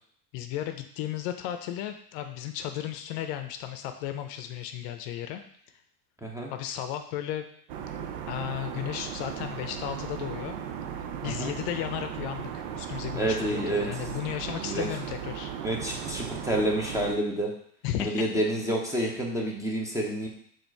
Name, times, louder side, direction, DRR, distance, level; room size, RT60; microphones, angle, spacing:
voice 1, 0.3-5.4 6.5-7.5 8.3-10.6 11.0-15.5 17.8-18.2, left 11 dB, 60° left, 7 dB, 0.6 m, -34 dB
voice 2, 6.2-6.5 11.2-11.5 13.1-13.9 14.6-14.9 15.6-17.5 18.0-20.3, right 1 dB, 5° right, -1 dB, 0.6 m, -29 dB
sound 1, 7.7-17.1, right 8 dB, 65° right, 0.7 m, -37 dB
4.3 x 2.5 x 4.5 m, 0.63 s
supercardioid pair, 110°, 48 cm